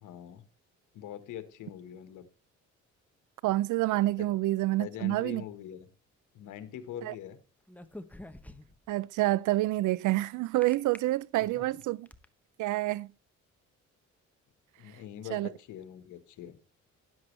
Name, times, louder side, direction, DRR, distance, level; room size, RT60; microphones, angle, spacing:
voice 1, 0.0-0.4 0.9-2.3 4.2-4.3 4.7-5.9 6.3-7.4 11.5-11.6 14.8-16.6, left 10 dB, 85° left, 1.5 m, -43 dB
voice 2, 3.4-5.4 7.0-7.1 8.9-12.1 12.6-13.1 15.3-15.5, right 17 dB, 80° right, 0.5 m, -28 dB
sound 1, 7.7-8.9 10.6-11.0 11.6-12.3, left 1 dB, 5° left, 1.0 m, -46 dB
12.5 x 10.5 x 3.3 m
cardioid pair, 90°, 30 cm